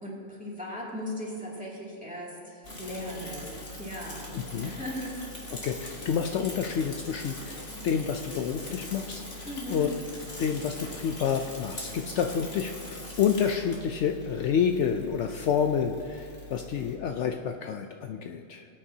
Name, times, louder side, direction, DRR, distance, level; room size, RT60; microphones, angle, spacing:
voice 1, 0.0-4.3 4.6-5.5 9.5-9.9, equal, 5° right, -6 dB, 2.4 m, -38 dB
Bicycle / Mechanisms, 2.6-16.9, left 1 dB, 50° left, 2.0 m, -42 dB
voice 2, 4.3-4.7 5.6-9.9 10.4-18.7, left 7 dB, 70° left, 4 dB, 0.8 m, -29 dB
21.0 x 8.7 x 2.8 m, 2.8 s
omnidirectional pair, 1.3 m